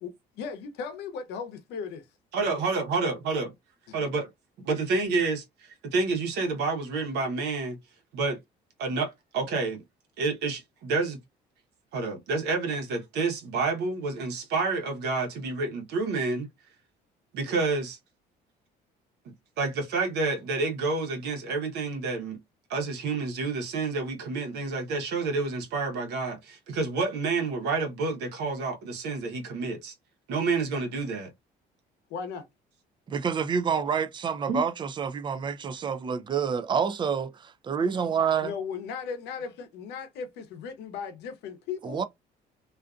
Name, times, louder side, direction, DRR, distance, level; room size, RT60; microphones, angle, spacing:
voice 1, 0.0-2.0 32.1-32.5 38.4-42.0, left 6 dB, 85° left, 0.7 m, -37 dB
voice 2, 2.3-3.5 3.9-4.3 4.6-7.8 8.1-8.4 8.8-9.8 10.2-11.2 11.9-16.5 17.3-18.0 19.6-22.4 22.7-29.9 30.3-31.3 34.5-34.6, right 3 dB, 80° right, 0.9 m, -29 dB
voice 3, 33.1-38.5 41.8-42.0, right 6 dB, 30° right, 0.3 m, -28 dB
2.5 x 2.4 x 2.3 m
cardioid pair, 110°, 17 cm